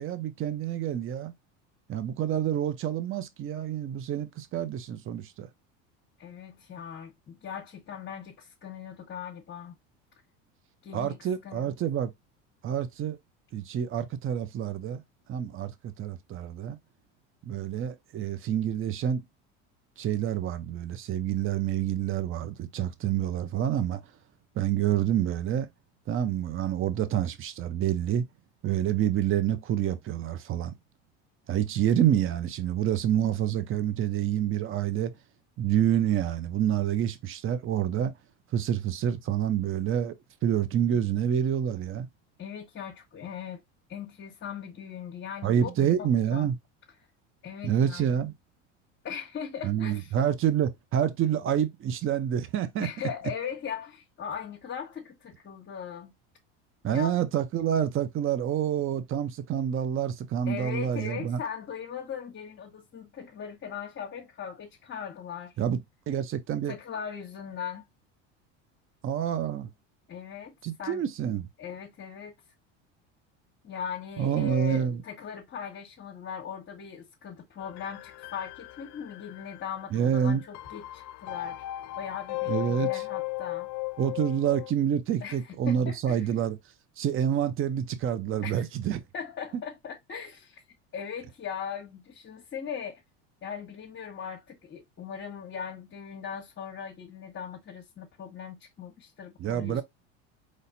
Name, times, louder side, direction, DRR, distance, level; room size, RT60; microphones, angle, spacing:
voice 1, 0.0-1.3 1.9-5.5 10.9-12.1 12.6-13.2 13.5-15.0 15.3-16.8 17.5-19.2 20.0-24.0 24.5-25.7 26.1-28.3 28.6-30.7 31.5-35.1 35.6-38.1 38.5-40.2 40.4-42.1 45.4-46.6 47.6-48.3 49.6-52.9 56.8-61.4 65.6-65.8 66.1-66.7 69.0-69.7 70.6-71.5 74.2-75.0 79.9-80.4 82.5-83.0 84.0-86.6 87.0-89.0 89.5-89.6 99.4-99.8, right 9 dB, 35° right, 0.7 m, -27 dB
voice 2, 6.2-9.7 10.8-11.2 11.4-11.7 42.4-43.6 43.9-45.7 46.0-46.5 47.4-48.1 49.0-50.1 52.8-56.1 56.8-57.2 60.5-65.5 66.7-67.8 70.1-71.0 71.6-72.3 73.6-81.6 81.9-83.7 85.2-86.3 88.4-88.6 89.1-90.6 90.9-93.0 93.4-99.8, left 7 dB, 35° left, 1.3 m, -39 dB
sound 1, 77.6-84.7, left 18 dB, 50° left, 0.5 m, -36 dB
4.2 x 3.2 x 2.6 m
supercardioid pair, 100°, 34 cm